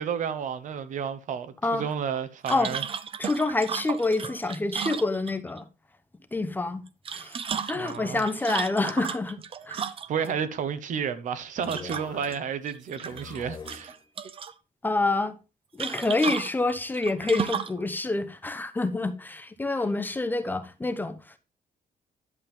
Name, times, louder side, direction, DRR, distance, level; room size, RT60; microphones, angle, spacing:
voice 1, 0.0-2.8 7.7-8.2 10.1-13.9, right 7 dB, 55° right, 1.1 m, -31 dB
sound 1, 2.5-5.6 6.9-10.3 11.6-12.4 12.7-13.4 13.7-14.5 15.8-17.8, right 7 dB, 35° right, 0.7 m, -34 dB
voice 2, 3.2-5.7 6.3-6.9 7.1-7.4 7.7-9.8 14.8-15.4 15.7-21.4, left 2 dB, 10° left, 0.8 m, -27 dB
sound 2, 11.6-12.6 12.9-14.0, left 5 dB, 30° left, 1.4 m, -44 dB
11.5 x 7.4 x 3.6 m
cardioid pair, 175°, 15 cm